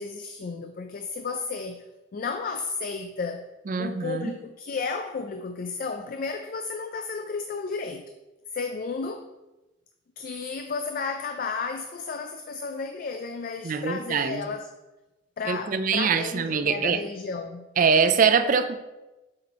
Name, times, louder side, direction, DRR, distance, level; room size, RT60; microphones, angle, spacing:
voice 1, 0.0-1.8 2.1-3.4 3.8-8.0 8.5-9.3 10.2-14.7 15.4-17.7, left 4 dB, 45° left, 6 dB, 0.4 m, -33 dB
voice 2, 3.7-4.3 13.6-14.5 15.4-17.0 17.8-18.8, right 5 dB, 40° right, 10 dB, 0.4 m, -23 dB
7.6 x 4.3 x 4.1 m, 1.1 s
head